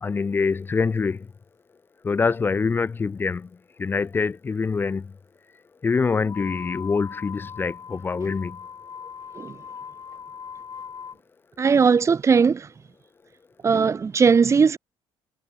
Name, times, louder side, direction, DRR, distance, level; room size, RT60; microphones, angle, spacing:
voice 1, 0.0-1.3 2.0-3.5 3.8-5.1 5.8-8.6, left 4 dB, 20° left, 0.3 m, -25 dB
sound 1, 6.2-11.2, left 7 dB, 40° left, 5.6 m, -40 dB
voice 2, 11.6-12.7 13.6-14.8, right 5 dB, 30° right, 0.9 m, -18 dB
cardioid pair, 105°, 10 cm